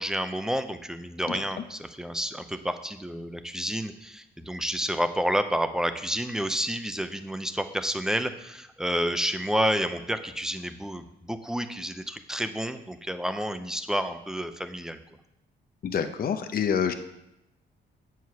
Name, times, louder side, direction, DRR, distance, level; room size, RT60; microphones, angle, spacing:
voice 1, 0.0-15.0, equal, 5° right, 9 dB, 0.6 m, -30 dB
voice 2, 15.8-16.9, left 7 dB, 50° left, 8 dB, 0.7 m, -27 dB
7.7 x 4.8 x 5.7 m, 0.86 s
cardioid pair, 90°, 20 cm